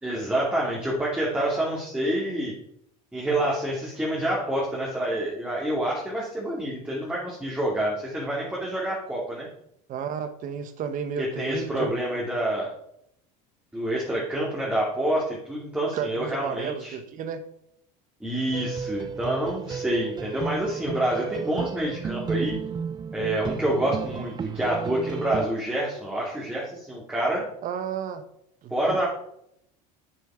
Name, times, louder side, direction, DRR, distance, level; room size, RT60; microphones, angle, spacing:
voice 1, 0.0-2.5 3.1-9.5 11.2-12.7 13.7-16.9 18.2-22.5 23.1-27.5 28.7-29.1, right 1 dB, 5° right, -5 dB, 2.8 m, -27 dB
voice 2, 9.9-11.9 15.9-17.4 27.6-28.2 28.6-29.1, right 7 dB, 45° right, 10 dB, 1.3 m, -32 dB
sound 1, 18.5-25.5, right 6 dB, 20° right, 0.5 m, -33 dB
9.1 x 8.5 x 5.1 m, 0.73 s
supercardioid pair, 120°, 19 cm